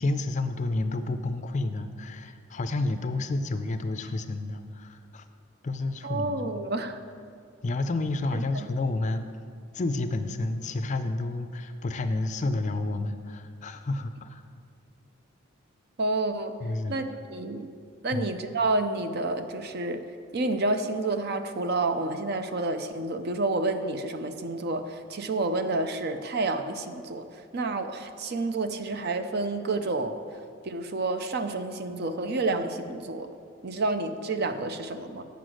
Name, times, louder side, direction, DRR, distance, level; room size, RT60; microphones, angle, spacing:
voice 1, 0.0-5.2 5.6-6.6 7.6-9.2 9.7-14.4 16.6-17.0 18.1-18.3, left 2 dB, 35° left, 9 dB, 0.4 m, -30 dB
voice 2, 6.0-7.0 8.3-8.7 16.0-16.6 16.9-17.0 17.3-17.7 18.0-20.1 20.3-30.2 30.6-33.3 33.6-35.2, right 2 dB, 50° right, 8 dB, 0.5 m, -29 dB
8.0 x 6.8 x 6.3 m, 2.3 s
head